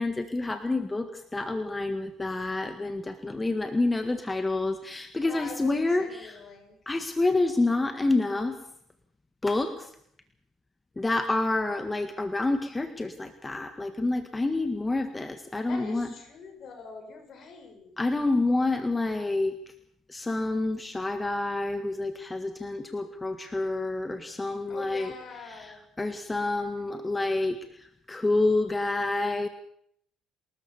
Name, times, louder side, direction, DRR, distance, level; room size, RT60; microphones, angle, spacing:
voice 1, 0.0-6.3 6.8-8.6 9.4-9.9 11.0-16.1 18.0-19.5 20.1-25.1 25.5-25.7 26.0-29.5, left 2 dB, 20° left, 9 dB, 1.7 m, -28 dB
voice 2, 5.2-6.8 15.7-18.0 24.7-25.8 26.9-27.2, left 5 dB, 55° left, 5 dB, 7.0 m, -44 dB
29.5 x 13.5 x 7.2 m, 0.70 s
supercardioid pair, 65°, 0 cm